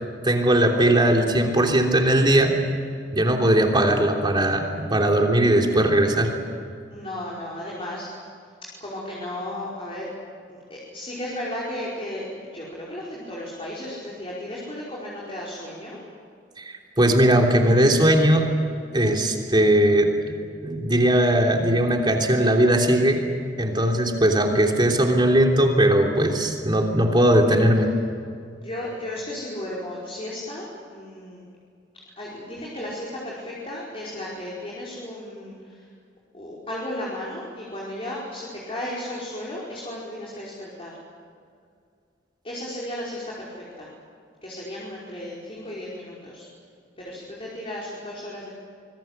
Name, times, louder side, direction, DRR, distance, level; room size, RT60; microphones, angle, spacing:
voice 1, 0.2-2.5 3.1-6.3 16.6-18.5 18.9-20.1 20.6-23.2 23.6-27.9, right 1 dB, 25° right, 2 dB, 3.3 m, -19 dB
voice 2, 6.9-8.2 8.8-10.1 10.5-16.0 23.7-23.9 28.6-31.4 32.2-35.9 36.3-40.9 42.4-43.9 44.4-46.5 47.0-48.5, left 1 dB, 30° left, -5 dB, 5.2 m, -34 dB
26.0 x 21.5 x 8.2 m, 2.2 s
head